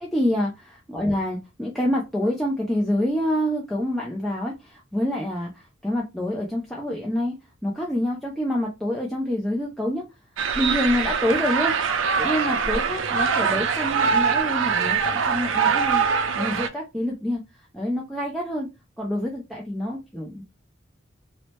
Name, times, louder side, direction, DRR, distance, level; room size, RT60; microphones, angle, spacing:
voice 1, 0.0-0.5 0.9-10.0 10.5-17.4 17.7-18.7 19.0-20.4, left 1 dB, ahead, -4 dB, 0.4 m, -27 dB
sound 1, 10.4-16.7, right 6 dB, 80° right, 0.4 m, -23 dB
2.7 x 2.1 x 3.0 m, 0.23 s
head